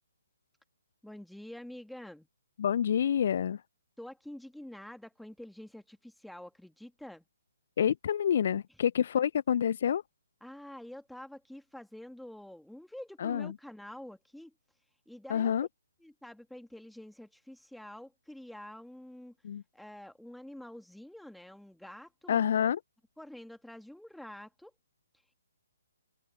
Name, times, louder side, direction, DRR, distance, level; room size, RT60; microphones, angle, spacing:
voice 1, 1.0-2.3 4.0-7.2 10.4-14.5 15.1-15.5 16.0-19.3 19.7-22.4 23.2-24.7, left 1 dB, ahead, 2.6 m, -47 dB
voice 2, 2.6-3.6 7.8-10.0 13.2-13.5 15.3-15.7 19.4-19.6 22.3-22.8, left 8 dB, 45° left, 0.8 m, -28 dB
open air
figure-of-eight pair, 130°, 0 cm